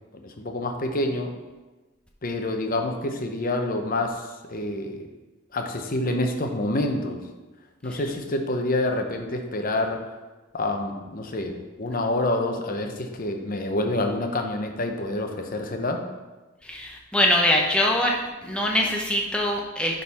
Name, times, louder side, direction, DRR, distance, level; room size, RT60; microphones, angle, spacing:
voice 1, 0.2-1.3 2.2-5.1 5.5-7.2 7.8-10.0 10.5-16.0, left 1 dB, 40° left, 4 dB, 0.8 m, -27 dB
voice 2, 16.7-18.1 18.4-20.0, left 1 dB, 5° left, -1 dB, 0.8 m, -23 dB
11.5 x 3.9 x 4.2 m, 1.2 s
head